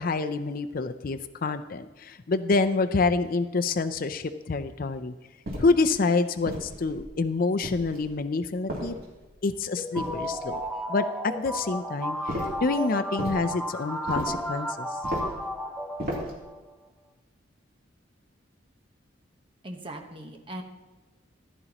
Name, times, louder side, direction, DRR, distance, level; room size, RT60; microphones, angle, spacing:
voice 1, 0.0-5.1 5.6-9.0 9.4-10.6 10.9-14.9, left 3 dB, 50° left, 9 dB, 0.5 m, -27 dB
sound 1, 5.5-5.9 6.5-7.1 7.6-8.1 8.7-9.3 10.0-10.6 12.3-12.7 13.2-13.5 14.1-14.5 15.0-15.4 16.0-16.4, equal, 50° right, 2.8 m, -35 dB
sound 2, 9.8-16.6, equal, ahead, 0.7 m, -33 dB
voice 2, 19.6-20.6, right 1 dB, 30° right, 3 dB, 1.1 m, -39 dB
15.0 x 11.0 x 3.0 m, 1.2 s
head